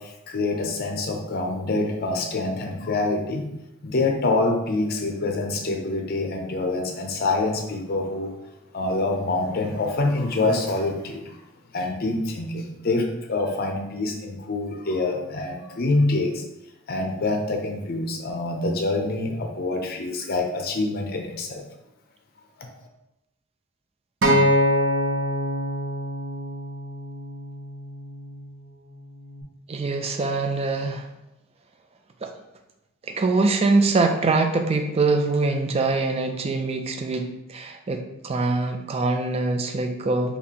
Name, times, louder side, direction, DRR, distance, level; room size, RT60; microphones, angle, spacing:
voice 1, 0.0-3.5 3.8-8.3 8.7-11.4 11.7-16.4 16.9-21.6 22.6-22.7, left 2 dB, 50° left, 3 dB, 0.5 m, -26 dB
Acoustic guitar, 24.2-28.5 29.3-29.4, equal, 65° right, 0.7 m, -24 dB
voice 2, 29.7-31.1 32.2-32.3 33.0-40.4, right 3 dB, 30° right, 5 dB, 0.4 m, -23 dB
4.2 x 2.9 x 2.8 m, 0.91 s
head